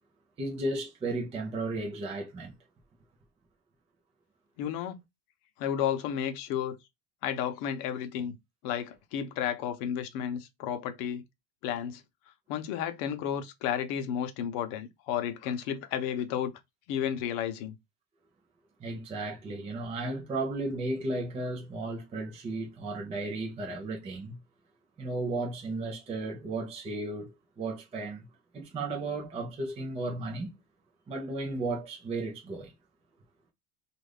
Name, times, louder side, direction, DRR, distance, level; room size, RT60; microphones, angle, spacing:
voice 1, 0.4-2.5 18.8-24.4 25.0-28.2 28.5-30.6 31.1-32.7, right 2 dB, 15° right, 0.4 m, -34 dB
voice 2, 4.6-5.0 5.6-6.8 7.2-8.4 8.6-11.2 11.6-12.0 12.5-16.5 16.9-17.8, left 9 dB, 65° left, 0.8 m, -32 dB
2.5 x 2.4 x 3.2 m
supercardioid pair, 130°, 49 cm